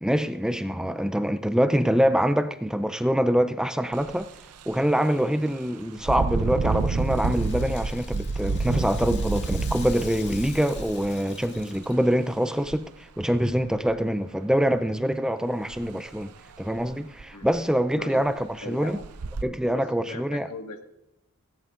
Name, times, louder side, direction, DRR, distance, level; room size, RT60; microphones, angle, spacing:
voice 1, 0.0-4.3 4.7-16.3 16.6-18.4 18.7-19.0 19.4-20.5, equal, 5° right, 0.4 m, -25 dB
Engine, 3.9-4.1 4.6-4.8 6.0-11.8 12.7-12.8 13.2-13.9 15.7-15.8 16.2-16.3 16.8-16.9 17.2-17.7 18.3-18.4 19.0-19.4, right 3 dB, 85° right, 0.6 m, -29 dB
Rattle (instrument), 6.0-12.3, left 7 dB, 50° left, 2.0 m, -46 dB
voice 2, 17.9-18.3 18.6-19.0 19.7-20.8, left 2 dB, 75° left, 1.7 m, -39 dB
18.5 x 17.5 x 2.5 m
head